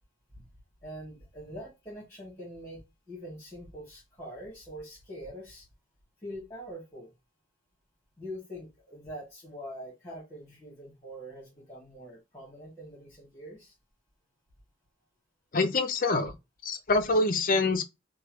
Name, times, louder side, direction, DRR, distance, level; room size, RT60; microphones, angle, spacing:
voice 1, 0.8-2.8 3.1-5.7 6.2-7.1 8.2-13.7, equal, 15° left, 1.5 m, -44 dB
voice 2, 15.5-16.3 16.6-17.8, left 3 dB, 40° left, 0.5 m, -25 dB
3.0 x 2.3 x 2.9 m
head